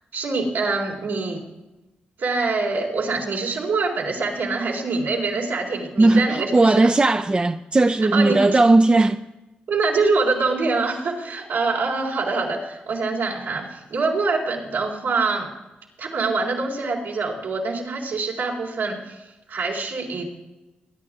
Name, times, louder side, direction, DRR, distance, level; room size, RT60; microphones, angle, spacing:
voice 1, 0.1-1.4 2.2-6.8 8.1-8.6 9.7-15.5 16.0-19.2 19.5-20.3, right 3 dB, 85° right, 4.0 m, -24 dB
voice 2, 6.0-9.2, right 2 dB, 30° right, 0.6 m, -17 dB
23.0 x 10.5 x 3.7 m
cardioid pair, 55°, 4 cm